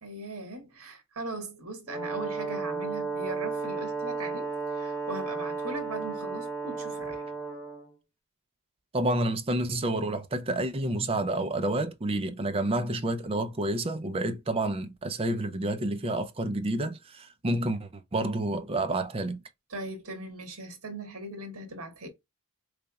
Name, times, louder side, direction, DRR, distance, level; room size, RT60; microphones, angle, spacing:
voice 1, 0.0-7.3 19.7-22.1, right 2 dB, 70° right, 1.4 m, -39 dB
Brass instrument, 1.9-7.9, right 4 dB, 10° left, 0.8 m, -33 dB
voice 2, 8.9-19.4, right 1 dB, 25° right, 0.5 m, -29 dB
3.9 x 3.3 x 2.3 m
head